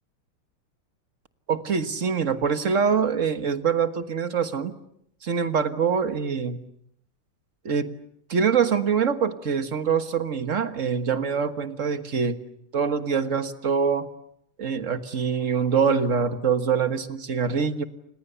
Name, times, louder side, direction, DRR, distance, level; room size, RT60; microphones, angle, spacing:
voice 1, 1.5-4.8 5.2-6.6 7.6-7.9 8.3-12.4 12.7-14.1 14.6-17.8, right 6 dB, 40° right, 9 dB, 1.5 m, -24 dB
30.0 x 27.0 x 6.9 m, 0.72 s
omnidirectional pair, 2.3 m